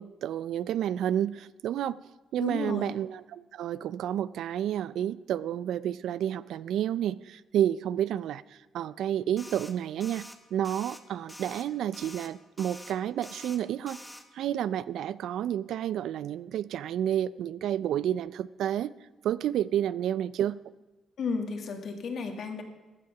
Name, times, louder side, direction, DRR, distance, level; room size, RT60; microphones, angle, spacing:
voice 1, 0.0-2.0 2.3-8.4 8.7-14.0 14.3-18.9 19.2-20.6, right 10 dB, 75° right, 18 dB, 0.4 m, -30 dB
voice 2, 2.4-3.0 21.2-22.6, left 4 dB, 60° left, 4 dB, 2.0 m, -33 dB
sound 1, 9.4-9.7 10.0-10.4 10.6-11.0 11.3-11.6 11.9-12.3 12.6-12.9 13.2-13.6 13.9-14.2, left 1 dB, 10° left, 1.1 m, -46 dB
15.0 x 8.5 x 5.9 m, 1.2 s
cardioid pair, 90°, 0 cm